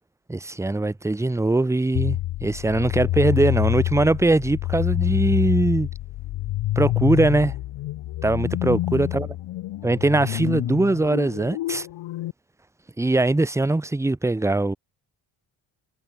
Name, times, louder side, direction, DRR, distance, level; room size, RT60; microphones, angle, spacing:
voice 1, 0.3-5.9 6.8-7.6 8.2-9.3 9.8-11.9 13.0-14.8, right 2 dB, 5° right, 0.6 m, -21 dB
sound 1, 1.9-12.3, left 15 dB, 70° left, 0.9 m, -27 dB
cardioid pair, 105°, 47 cm